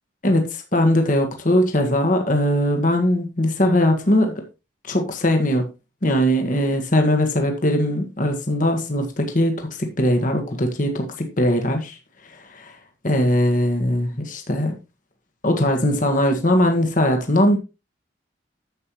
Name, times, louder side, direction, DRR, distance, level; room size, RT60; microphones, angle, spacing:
voice 1, 0.2-4.3 4.9-5.6 6.0-12.0 12.5-12.7 13.0-14.7 15.4-17.6, left 1 dB, 45° left, 4 dB, 1.5 m, -20 dB
10.5 x 7.7 x 3.1 m, 0.27 s
head